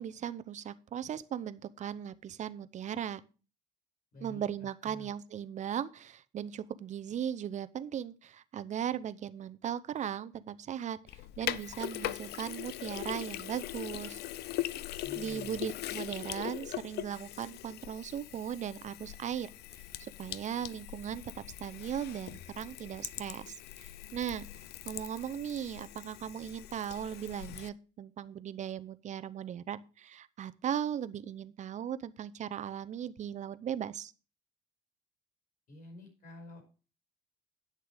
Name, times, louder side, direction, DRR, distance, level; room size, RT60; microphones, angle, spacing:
voice 1, 0.0-3.2 4.2-11.0 11.4-14.2 15.2-19.5 20.0-24.5 24.9-34.1, right 9 dB, 45° right, 14 dB, 0.7 m, -38 dB
voice 2, 4.1-5.1 15.0-15.7 35.7-36.7, left 2 dB, 55° left, 3 dB, 5.1 m, -50 dB
Sink (filling or washing), 11.1-27.7, left 14 dB, 75° left, 0.6 m, -41 dB
9.8 x 6.7 x 4.9 m, 0.36 s
cardioid pair, 110°, 17 cm